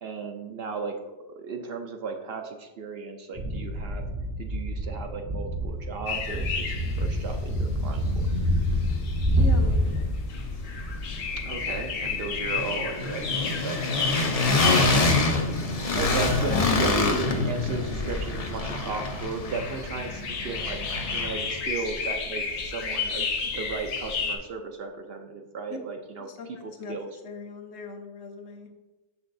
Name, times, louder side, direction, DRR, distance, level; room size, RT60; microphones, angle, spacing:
voice 1, 0.0-0.9 1.3-4.0 4.4-8.2 11.4-13.9 15.9-20.8 21.1-27.1, right 4 dB, 60° right, 4 dB, 0.7 m, -35 dB
sound 1, 3.3-10.0, equal, 85° right, 1.7 m, -27 dB
sound 2, 6.1-24.4, left 5 dB, 85° left, 1.2 m, -34 dB
sound 3, 7.6-7.7 7.9-9.1 9.3-21.6, left 3 dB, 40° left, 0.6 m, -27 dB
voice 2, 9.4-10.1 14.7-15.0 25.7-25.8 26.3-27.0 27.2-28.7, left 4 dB, 65° left, 5 dB, 0.9 m, -39 dB
6.5 x 5.9 x 2.6 m, 1.2 s
omnidirectional pair, 1.3 m